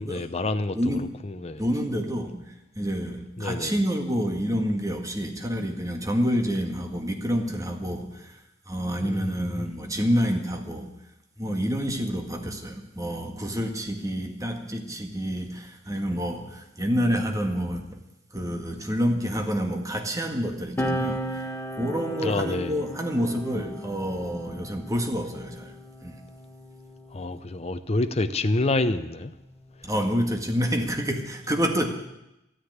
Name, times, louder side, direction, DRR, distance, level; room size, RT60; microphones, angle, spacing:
voice 1, 0.0-0.8 1.2-1.6 3.4-3.7 9.0-9.3 9.6-9.7 22.2-22.8 27.1-29.3, left 2 dB, 35° left, 9 dB, 0.7 m, -27 dB
voice 2, 0.8-1.1 1.6-2.4 2.8-8.4 8.7-10.9 11.4-18.0 18.3-21.5 21.8-26.2 29.8-31.9, equal, 20° right, 3 dB, 1.9 m, -28 dB
sound 1, 20.8-27.7 28.7-30.5, equal, 10° left, 1.5 m, -36 dB
13.0 x 10.0 x 9.5 m, 0.90 s
head